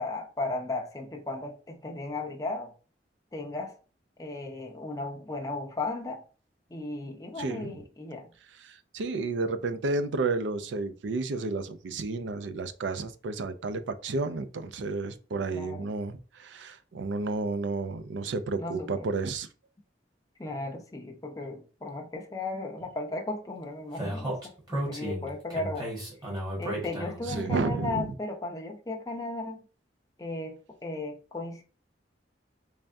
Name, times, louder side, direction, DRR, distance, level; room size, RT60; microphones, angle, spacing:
voice 1, 0.0-2.7 3.3-3.7 4.2-6.2 6.7-8.3 15.5-15.9 18.6-19.1 20.4-24.5 24.8-25.9 26.6-29.7 30.2-31.6, left 2 dB, 20° left, 0.5 m, -35 dB
voice 2, 7.4-7.7 8.6-19.5 27.3-28.1, right 3 dB, 80° right, 0.4 m, -31 dB
Speech, 24.0-27.4, right 1 dB, 25° right, 1.5 m, -34 dB
3.4 x 3.4 x 2.6 m
head